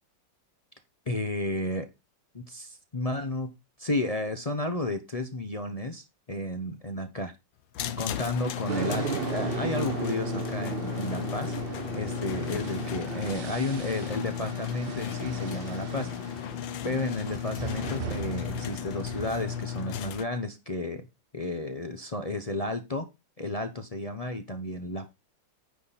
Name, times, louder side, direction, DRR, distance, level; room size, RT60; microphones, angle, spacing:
voice 1, 1.1-1.9 2.3-3.5 3.8-7.3 8.0-16.1 16.8-21.1 21.3-23.1 23.4-25.1, left 2 dB, 40° left, 6 dB, 0.5 m, -32 dB
sound 1, 7.7-20.2, left 9 dB, 80° left, 1.6 m, -35 dB
sound 2, 8.7-19.6, right 7 dB, 80° right, 0.5 m, -37 dB
9.6 x 5.9 x 4.1 m, 0.24 s
omnidirectional pair, 2.1 m